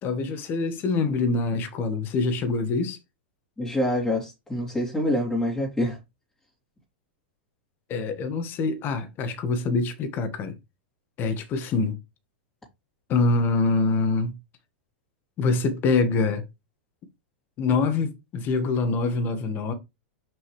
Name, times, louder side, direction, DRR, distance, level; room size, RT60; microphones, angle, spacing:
voice 1, 0.0-3.0 7.9-10.5 11.2-12.0 13.1-14.3 15.4-16.4 17.6-19.7, left 3 dB, 35° left, 1.5 m, -25 dB
voice 2, 3.6-6.0, left 1 dB, 10° left, 3.0 m, -26 dB
5.8 x 5.4 x 3.2 m
hypercardioid pair, 115°, 6 cm